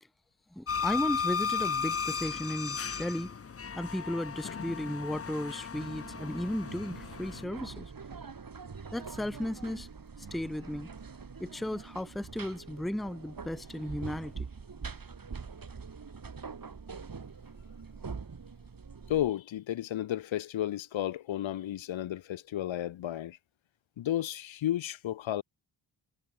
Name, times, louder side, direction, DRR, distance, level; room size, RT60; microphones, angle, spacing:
voice 1, 0.5-3.3 3.8-7.9 8.9-9.9 10.3-10.9 11.4-14.5, left 1 dB, ahead, 0.7 m, -35 dB
sound 1, 0.7-7.4, left 6 dB, 30° left, 0.8 m, -35 dB
sound 2, 5.7-19.3, right 5 dB, 45° right, 4.2 m, -44 dB
voice 2, 19.1-23.4 24.0-25.4, left 12 dB, 70° left, 1.0 m, -33 dB
cardioid pair, 55°, 48 cm